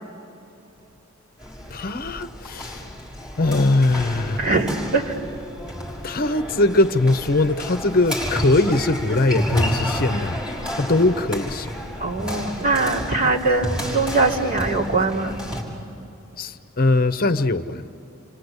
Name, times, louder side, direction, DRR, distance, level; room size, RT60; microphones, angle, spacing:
sound 1, 1.4-15.6, equal, 5° right, 6.1 m, -30 dB
voice 1, 1.7-2.9 3.4-4.5 6.0-10.4 10.7-11.7 16.4-17.8, left 2 dB, 45° left, 0.8 m, -21 dB
voice 2, 4.4-5.1 12.0-15.4, right 3 dB, 45° right, 3.2 m, -22 dB
29.0 x 25.0 x 8.2 m
head